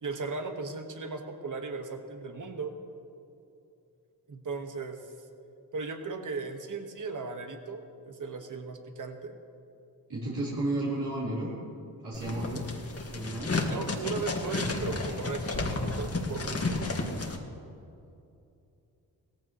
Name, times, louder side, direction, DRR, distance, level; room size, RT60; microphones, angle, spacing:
voice 1, 0.0-2.7 4.3-5.1 5.7-9.4 13.7-16.8, right 4 dB, 50° right, 5 dB, 1.6 m, -37 dB
voice 2, 10.1-11.6 12.0-12.7 13.1-13.6, right 1 dB, 75° right, -9 dB, 3.9 m, -32 dB
sound 1, 12.1-17.4, left 2 dB, 35° left, 1.8 m, -32 dB
17.5 x 15.0 x 3.1 m, 2.6 s
supercardioid pair, 55°, 41 cm